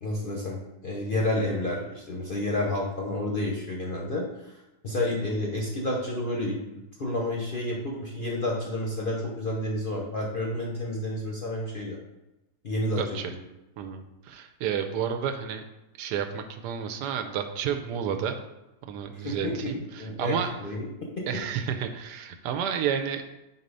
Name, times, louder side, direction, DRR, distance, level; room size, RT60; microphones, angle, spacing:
voice 1, 0.0-6.6 7.0-12.0 12.6-13.0 13.3-13.4 19.1-19.7 20.0-21.2, left 1 dB, 50° left, -2 dB, 0.6 m, -30 dB
voice 2, 13.0-13.3 13.8-15.6 16.0-18.4 18.9-20.5 21.3-23.2, right 8 dB, 80° right, 6 dB, 1.2 m, -31 dB
4.6 x 4.2 x 5.3 m, 0.97 s
omnidirectional pair, 1.8 m